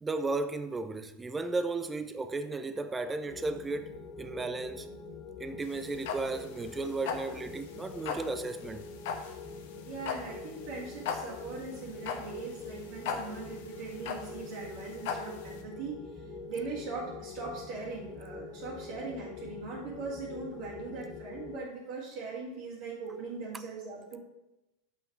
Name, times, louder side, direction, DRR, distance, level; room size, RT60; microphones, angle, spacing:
voice 1, 0.0-4.9 5.4-8.8, right 3 dB, 15° right, 0.6 m, -34 dB
sound 1, 3.3-21.6, left 4 dB, 40° left, 1.4 m, -45 dB
sound 2, 5.6-15.6, left 6 dB, 65° left, 1.0 m, -38 dB
voice 2, 9.9-15.9 16.5-24.2, right 4 dB, 60° right, 2.3 m, -40 dB
5.9 x 5.6 x 6.1 m
hypercardioid pair, 95°, 0 cm